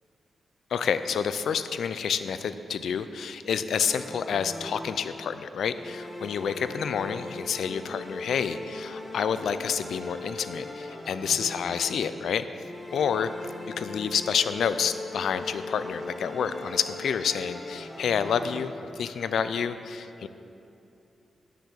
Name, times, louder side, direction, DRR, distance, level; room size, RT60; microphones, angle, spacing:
voice 1, 0.7-12.4 12.9-13.3 13.7-20.3, left 7 dB, 85° left, 12 dB, 0.4 m, -29 dB
sound 1, 3.8-5.3 5.7-12.1 12.6-19.0, left 2 dB, 20° left, 1.6 m, -39 dB
10.0 x 6.0 x 6.9 m, 2.8 s
cardioid pair, 85°, 0 cm